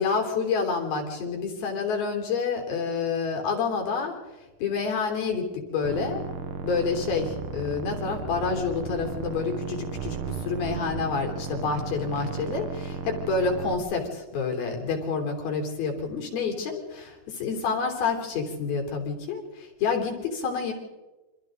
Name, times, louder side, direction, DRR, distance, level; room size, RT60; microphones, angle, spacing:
voice 1, 0.0-4.2 4.6-6.2 6.6-10.2 10.5-20.7, left 5 dB, 90° left, 2 dB, 5.3 m, -28 dB
sound 1, 5.8-13.8, right 6 dB, 55° right, 1.5 m, -35 dB
28.5 x 25.5 x 3.9 m, 1.1 s
omnidirectional pair, 4.1 m